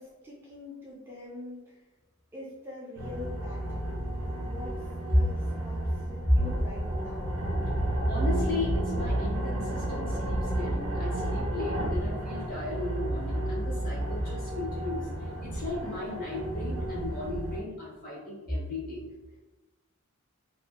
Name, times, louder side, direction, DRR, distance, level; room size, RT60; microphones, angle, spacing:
voice 1, 0.0-1.7 2.3-3.9 4.4-4.8 5.1-5.8 6.1-7.3, left 2 dB, 10° right, -6 dB, 0.3 m, -44 dB
sound 1, 3.0-17.6, right 1 dB, 70° right, 0.6 m, -31 dB
voice 2, 8.1-15.0 15.4-19.0, left 1 dB, 40° left, -5 dB, 0.8 m, -33 dB
2.5 x 2.1 x 2.3 m, 1.2 s
head